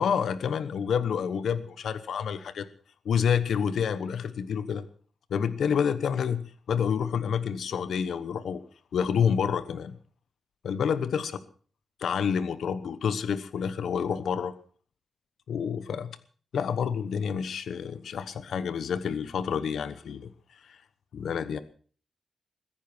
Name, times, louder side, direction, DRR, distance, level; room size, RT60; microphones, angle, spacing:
voice 1, 0.0-2.7 3.0-4.8 5.3-8.6 8.9-10.0 10.6-11.4 12.0-14.5 15.5-16.2 16.5-20.3 20.6-20.8 21.1-21.6, left 7 dB, 85° left, 13 dB, 1.1 m, -28 dB
21.5 x 10.5 x 6.1 m, 0.43 s
wide cardioid pair, 120°, 0 cm